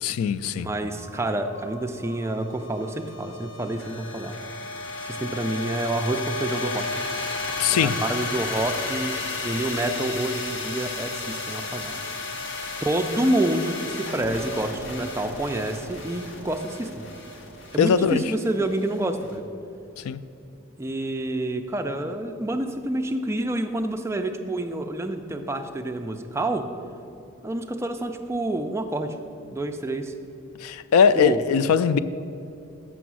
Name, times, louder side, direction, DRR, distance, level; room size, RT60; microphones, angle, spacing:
voice 1, 0.0-0.7 7.6-8.0 17.8-18.2 20.0-20.2 30.6-32.0, left 7 dB, 85° left, 0.3 m, -21 dB
voice 2, 0.5-4.4 5.0-7.0 7.6-12.0 12.8-17.1 17.7-19.4 20.8-26.7 27.4-29.2 29.5-30.1 31.1-31.4, right 1 dB, 10° right, 0.3 m, -28 dB
sound 1, 1.0-19.3, left 3 dB, 55° left, 0.8 m, -34 dB
6.9 x 6.3 x 6.1 m
head